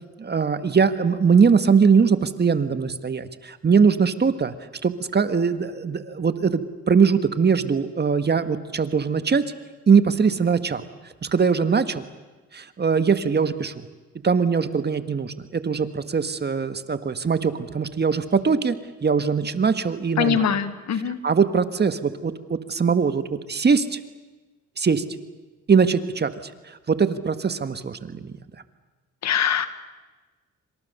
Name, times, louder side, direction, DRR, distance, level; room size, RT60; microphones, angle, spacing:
voice 1, 0.2-4.5 4.8-9.4 9.9-10.8 11.2-12.0 12.5-13.9 14.2-18.8 19.0-20.4 21.2-24.0 24.8-25.0 25.7-26.3 26.7-28.3, right 5 dB, 35° right, 11 dB, 1.7 m, -21 dB
voice 2, 20.2-21.2 29.2-29.7, left 8 dB, 65° left, 12 dB, 1.8 m, -22 dB
27.5 x 25.5 x 6.9 m, 1.2 s
cardioid pair, 90°, 30 cm